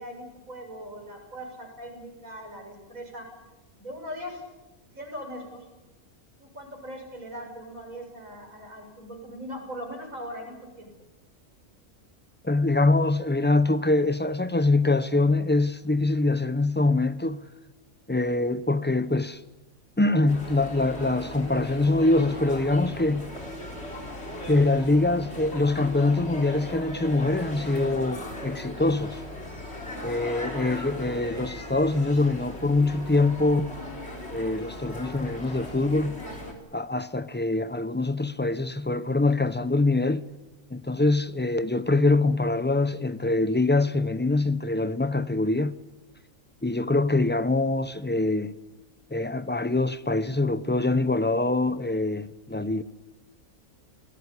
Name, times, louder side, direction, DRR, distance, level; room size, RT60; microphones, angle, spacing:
voice 1, 0.0-3.3 3.8-4.4 4.9-5.7 6.4-10.9, equal, 75° right, 7.2 m, -40 dB
voice 2, 12.4-17.4 18.1-19.4 20.0-23.3 24.5-29.2 30.0-33.7 34.3-36.2 36.7-40.2 40.7-45.8 46.6-48.5 49.1-52.8, left 2 dB, 10° left, 0.6 m, -24 dB
sound 1, 20.3-36.5, left 1 dB, 50° left, 4.2 m, -38 dB
29.0 x 17.5 x 9.8 m
omnidirectional pair, 1.4 m